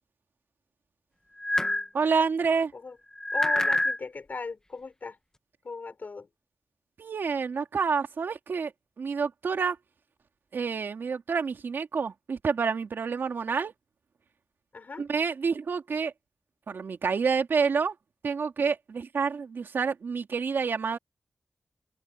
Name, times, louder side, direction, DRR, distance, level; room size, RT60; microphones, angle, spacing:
sound 1, 1.4-1.9 3.2-4.0, left 1 dB, 15° left, 1.6 m, -25 dB
voice 1, 1.9-2.7 7.0-8.7 9.0-9.8 10.5-13.7 15.0-16.1 16.7-17.9 18.2-21.0, right 5 dB, 80° right, 2.8 m, -28 dB
voice 2, 3.3-5.2 5.6-6.3 14.7-15.1, left 4 dB, 55° left, 6.7 m, -38 dB
wide cardioid pair, 110°, 4 cm